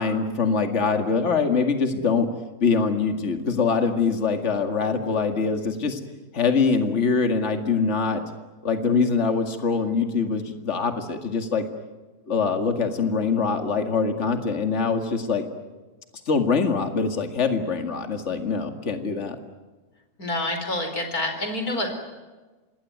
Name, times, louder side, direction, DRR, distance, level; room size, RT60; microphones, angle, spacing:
voice 1, 0.0-2.3 2.6-6.0 6.3-8.2 8.6-11.7 12.3-15.5 16.3-19.4, left 5 dB, 45° left, 7 dB, 2.4 m, -23 dB
voice 2, 20.2-21.9, left 1 dB, 70° left, 6 dB, 4.9 m, -27 dB
26.5 x 20.5 x 9.3 m, 1.2 s
omnidirectional pair, 1.7 m